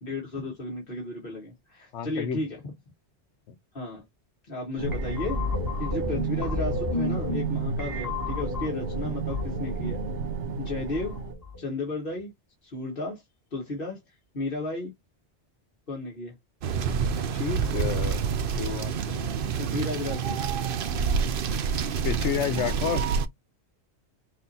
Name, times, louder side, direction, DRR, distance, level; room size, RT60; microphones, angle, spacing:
voice 1, 0.0-2.6 3.7-4.1 4.5-5.4 5.8-10.0 10.6-11.2 11.6-12.3 12.6-13.2 13.5-14.0 14.3-14.9 15.9-16.4 19.6-20.4, left 2 dB, 55° left, 1.8 m, -33 dB
voice 2, 1.9-2.4 3.5-3.6 17.2-18.3 18.6-19.4 22.0-23.0, left 8 dB, 85° left, 1.1 m, -31 dB
sound 1, 4.8-11.7, left 1 dB, 15° left, 1.3 m, -32 dB
sound 2, 4.8-11.3, right 3 dB, 85° right, 1.2 m, -34 dB
sound 3, 16.6-23.3, right 6 dB, 60° right, 0.7 m, -27 dB
6.2 x 2.7 x 2.8 m
omnidirectional pair, 1.1 m